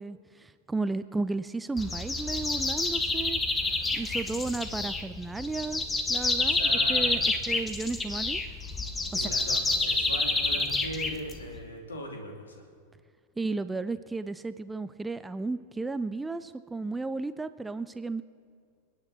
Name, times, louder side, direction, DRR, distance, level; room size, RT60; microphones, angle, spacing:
voice 1, 0.0-3.4 3.9-7.2 7.5-8.4 9.1-9.3 13.4-18.2, right 3 dB, 10° right, 12 dB, 0.5 m, -33 dB
sound 1, 1.8-11.6, left 3 dB, 15° left, 1.2 m, -28 dB
voice 2, 6.4-7.3 9.1-12.6, left 1 dB, 70° left, 2 dB, 2.7 m, -39 dB
28.5 x 9.6 x 4.3 m, 2.2 s
figure-of-eight pair, 90°, 0 cm